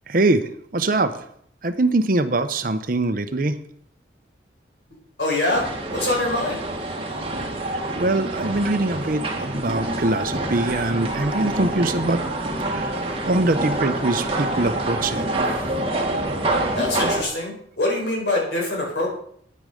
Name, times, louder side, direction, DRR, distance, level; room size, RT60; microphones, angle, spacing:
voice 1, 0.1-1.2 1.6-3.5 7.6-12.2 12.7-15.3, right 2 dB, 45° right, 10 dB, 0.8 m, -23 dB
voice 2, 5.2-5.6 5.9-6.6 16.7-19.1, left 2 dB, 65° left, -1 dB, 4.9 m, -24 dB
sound 1, 5.5-17.2, right 2 dB, 30° right, 1.6 m, -26 dB
9.7 x 9.6 x 5.2 m, 0.65 s
head